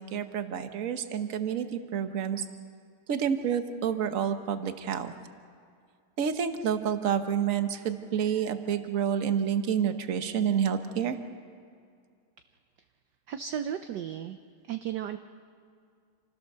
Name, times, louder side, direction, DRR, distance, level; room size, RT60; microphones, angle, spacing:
voice 1, 0.0-2.4 3.1-5.1 6.2-11.2, right 8 dB, 45° right, 8 dB, 1.2 m, -29 dB
voice 2, 13.3-14.4 14.6-15.2, right 9 dB, 65° right, 8 dB, 1.2 m, -34 dB
28.0 x 16.0 x 6.8 m, 2.2 s
omnidirectional pair, 2.3 m